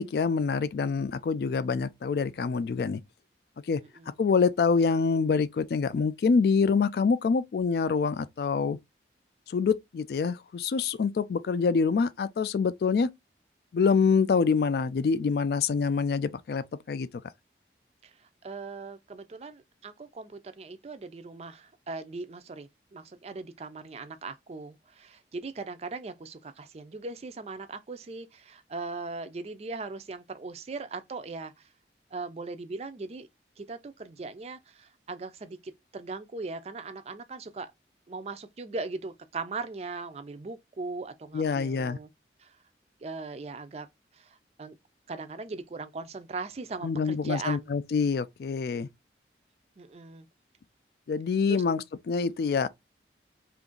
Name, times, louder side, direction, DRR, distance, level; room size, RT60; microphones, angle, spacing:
voice 1, 0.0-3.0 3.7-3.8 4.2-8.8 9.5-13.1 13.7-17.1 41.3-42.0 46.8-48.9 51.1-52.7, left 5 dB, 55° left, 0.3 m, -26 dB
voice 2, 18.0-31.7 32.1-33.3 33.6-37.7 38.1-42.1 42.4-42.5 43.0-43.9 44.1-44.8 45.1-47.7 49.8-50.3 51.5-51.6, right 3 dB, 35° right, 0.4 m, -39 dB
2.8 x 2.5 x 3.7 m
head